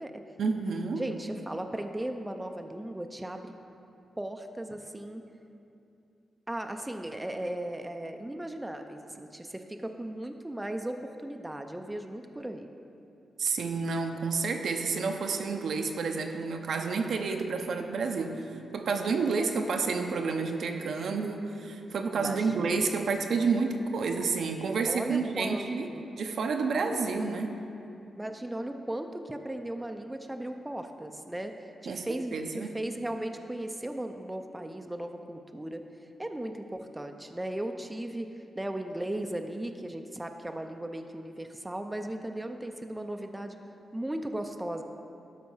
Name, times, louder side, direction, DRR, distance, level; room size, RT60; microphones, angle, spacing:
voice 1, 0.4-1.1 13.4-25.9 26.2-27.6 31.9-32.1 32.3-32.7, right 4 dB, 75° right, 4 dB, 0.7 m, -30 dB
voice 2, 1.0-3.5 4.2-5.2 6.5-12.7 22.1-22.9 24.9-26.0 28.2-35.8 36.2-38.3 38.6-43.6 43.9-44.8, right 1 dB, 10° right, 5 dB, 0.5 m, -37 dB
12.0 x 4.3 x 5.6 m, 2.7 s
cardioid pair, 75°, 0 cm